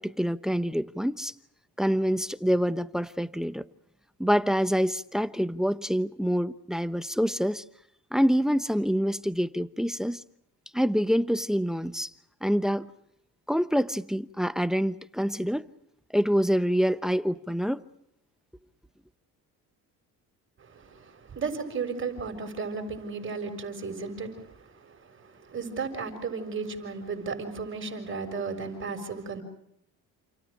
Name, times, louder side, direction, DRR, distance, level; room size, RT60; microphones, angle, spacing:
voice 1, 0.0-1.3 1.8-3.6 4.2-7.6 8.1-10.2 10.7-12.1 12.4-12.9 13.5-15.7 16.1-17.8, equal, ahead, 0.9 m, -26 dB
voice 2, 20.6-29.4, right 4 dB, 35° right, 6.4 m, -35 dB
29.0 x 28.5 x 5.1 m
cardioid pair, 120°, 37 cm